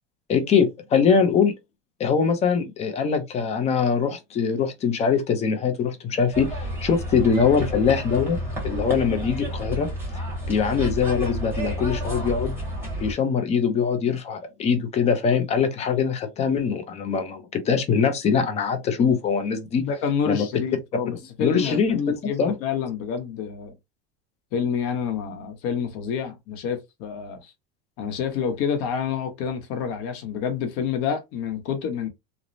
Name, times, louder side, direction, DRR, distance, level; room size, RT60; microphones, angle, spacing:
voice 1, 0.3-1.5 2.0-8.4 8.6-9.9 10.5-12.5 13.0-19.9 20.3-20.4 21.4-22.5, left 6 dB, 20° left, 0.5 m, -22 dB
sound 1, 6.3-13.1, equal, 5° right, 1.3 m, -30 dB
voice 2, 19.8-23.7 24.5-27.5 28.0-32.1, left 7 dB, 50° left, 0.8 m, -28 dB
3.1 x 2.0 x 2.5 m
supercardioid pair, 155°, 31 cm